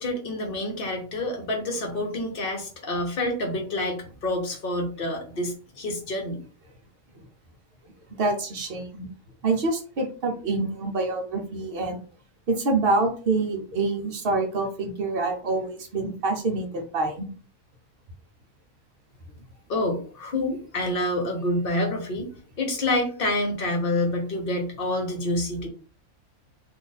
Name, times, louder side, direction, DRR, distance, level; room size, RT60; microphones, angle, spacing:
voice 1, 0.0-6.4 19.7-25.7, left 1 dB, 45° left, 2 dB, 0.9 m, -28 dB
voice 2, 8.1-9.1 9.4-12.0 12.5-17.3, right 3 dB, 50° right, 3 dB, 0.7 m, -26 dB
2.6 x 2.5 x 4.0 m, 0.40 s
omnidirectional pair, 1.5 m